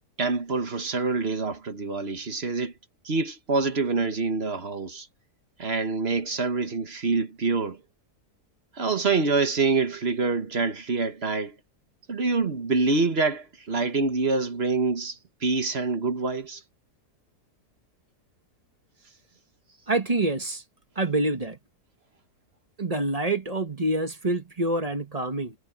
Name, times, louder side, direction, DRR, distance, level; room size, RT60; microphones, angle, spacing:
voice 1, 0.2-2.7 3.1-5.1 5.6-7.8 8.8-11.6 12.1-16.6, right 4 dB, 40° right, 1.6 m, -26 dB
voice 2, 19.9-20.6 20.9-21.6 22.8-25.5, right 2 dB, 25° right, 1.5 m, -26 dB
omnidirectional pair, 1.8 m